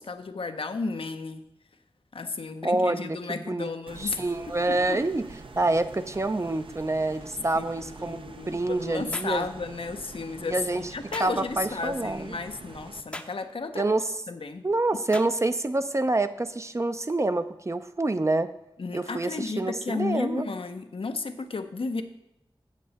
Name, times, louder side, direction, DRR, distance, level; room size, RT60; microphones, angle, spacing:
voice 1, 0.0-1.4 2.1-4.2 4.7-5.0 7.6-13.8 14.3-14.6 18.8-22.0, left 4 dB, 80° left, 8 dB, 0.6 m, -33 dB
voice 2, 2.6-3.7 4.0-5.3 5.5-8.2 8.5-9.5 10.5-10.8 11.2-12.4 13.7-14.1 14.6-18.5 18.9-20.5, right 2 dB, 30° right, 11 dB, 0.4 m, -27 dB
sound 1, 3.9-13.0, right 3 dB, 70° right, 0.6 m, -46 dB
sound 2, 9.1-9.4 11.1-11.4 13.1-13.4 15.1-15.4, left 1 dB, 10° left, 0.6 m, -39 dB
8.6 x 7.4 x 4.0 m, 0.87 s
wide cardioid pair, 75°, 9 cm